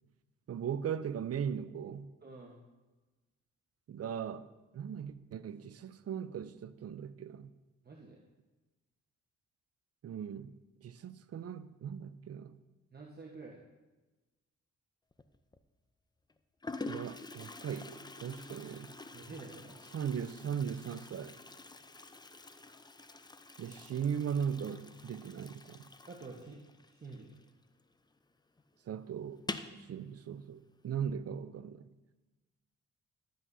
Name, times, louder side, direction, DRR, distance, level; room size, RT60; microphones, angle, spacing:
voice 1, 0.5-2.1 3.9-4.5 4.7-7.5 10.0-10.6 10.8-12.6 16.9-18.9 19.9-21.4 23.6-25.9 28.9-29.4 29.7-31.9, right 8 dB, 55° right, 0.6 m, -38 dB
voice 2, 2.2-2.6 7.8-8.2 12.9-13.7 19.1-19.8 26.0-26.6 26.9-27.4, right 3 dB, 35° right, 1.2 m, -48 dB
Toilet flush, 15.1-15.6 16.3-16.4 16.6-27.9 28.2-28.3 28.6-28.7 29.3-29.8, left 3 dB, 15° left, 0.5 m, -47 dB
12.0 x 7.6 x 2.7 m
cardioid pair, 65°, 30 cm